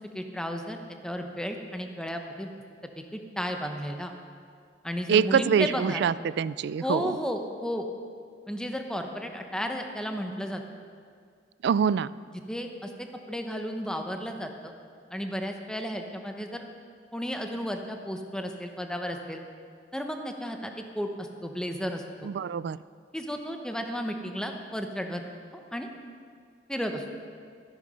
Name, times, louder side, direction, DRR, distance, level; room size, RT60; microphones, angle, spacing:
voice 1, 0.1-2.5 3.0-4.1 4.8-6.0 6.8-7.9 8.5-10.6 12.5-14.7 15.1-16.6 17.1-19.4 19.9-22.3 23.1-25.2 25.5-25.9 26.7-27.0, equal, 5° left, 4 dB, 0.9 m, -33 dB
voice 2, 5.1-7.2 11.6-12.1 22.2-22.8, right 7 dB, 65° right, 19 dB, 0.3 m, -25 dB
13.5 x 10.5 x 5.5 m, 2.2 s
head